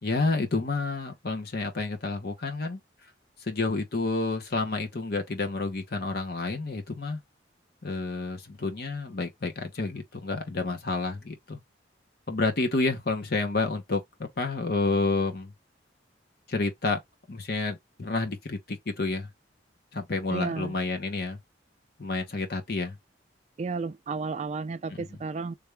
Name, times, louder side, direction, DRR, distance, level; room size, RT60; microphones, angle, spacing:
voice 1, 0.0-2.8 3.5-7.2 7.8-11.6 12.3-15.5 16.5-17.0 17.3-19.3 19.9-21.4 22.0-22.9, left 3 dB, 55° left, 1.0 m, -29 dB
voice 2, 20.3-20.7 23.6-25.5, right 4 dB, 35° right, 0.3 m, -32 dB
3.5 x 2.5 x 3.3 m
head